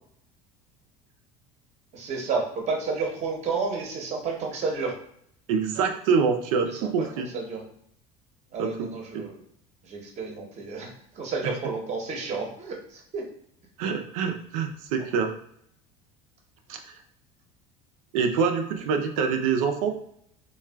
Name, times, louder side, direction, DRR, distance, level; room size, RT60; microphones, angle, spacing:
voice 1, 1.9-4.9 7.0-7.1 7.3-7.6 8.5-9.4 9.9-10.9 11.2-13.2, right 4 dB, 40° right, 1 dB, 0.8 m, -31 dB
voice 2, 5.5-7.3 8.6-8.7 9.1-9.2 11.4-11.5 13.8-15.3 16.7-17.0 18.1-19.9, right 6 dB, 85° right, 5 dB, 0.5 m, -25 dB
3.3 x 2.3 x 2.2 m, 0.67 s
supercardioid pair, 100°, 17 cm